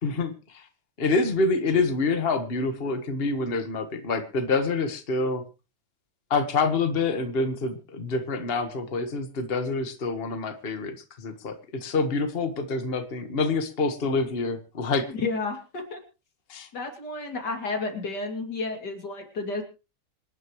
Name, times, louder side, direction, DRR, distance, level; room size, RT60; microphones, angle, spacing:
voice 1, 0.0-0.6 1.0-5.4 6.3-15.1 16.5-16.7, left 3 dB, 35° left, 7 dB, 1.6 m, -27 dB
voice 2, 15.1-16.0 16.7-19.6, left 3 dB, 85° left, 4 dB, 3.3 m, -31 dB
26.0 x 10.5 x 3.1 m, 0.32 s
omnidirectional pair, 1.8 m